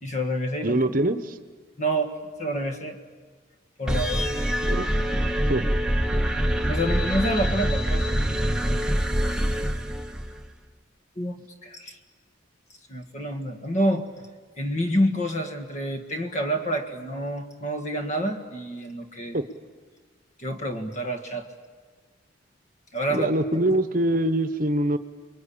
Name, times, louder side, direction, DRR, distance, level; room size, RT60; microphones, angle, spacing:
voice 1, 0.0-0.8 1.8-2.1 2.4-3.0 3.8-4.3 6.7-8.6 11.2-12.0 12.9-14.1 14.6-19.4 20.4-21.5 22.9-23.3, equal, 35° left, 6 dB, 1.7 m, -28 dB
voice 2, 0.6-1.4 4.6-4.9 5.4-5.6 19.3-19.4 23.1-25.0, right 1 dB, 45° right, 11 dB, 1.1 m, -24 dB
sound 1, 3.9-10.5, equal, 5° right, 1.0 m, -25 dB
28.5 x 22.5 x 8.7 m, 1.4 s
head